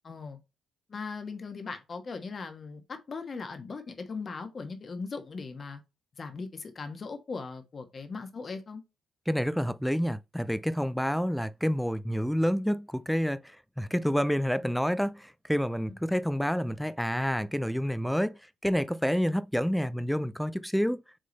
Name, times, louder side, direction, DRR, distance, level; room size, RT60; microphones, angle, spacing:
voice 1, 0.0-0.4 0.9-5.8 6.2-8.8, left 4 dB, 40° left, 1.4 m, -39 dB
voice 2, 9.3-21.0, equal, ahead, 0.5 m, -28 dB
6.4 x 3.8 x 4.0 m
cardioid pair, 90°, 0 cm